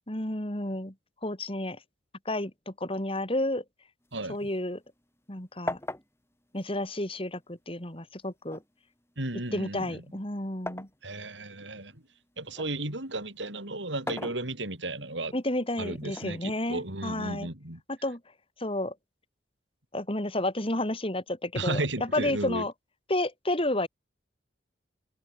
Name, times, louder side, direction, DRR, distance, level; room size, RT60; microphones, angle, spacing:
voice 1, 0.1-0.9 1.2-1.8 2.3-3.6 4.3-4.8 5.3-5.8 6.5-8.6 9.5-10.9 15.3-17.5 17.9-18.2 18.6-18.9 19.9-22.7 23.1-23.9, left 1 dB, 30° left, 3.5 m, -31 dB
sound 1, 4.0-5.3 5.7-7.6 8.5-11.0 11.5-12.8 13.8-15.0 16.1-17.1, left 1 dB, 15° left, 5.9 m, -40 dB
voice 2, 9.2-10.0 11.0-12.0 12.4-15.3 15.8-17.8 21.5-22.6, right 2 dB, 85° right, 6.6 m, -34 dB
head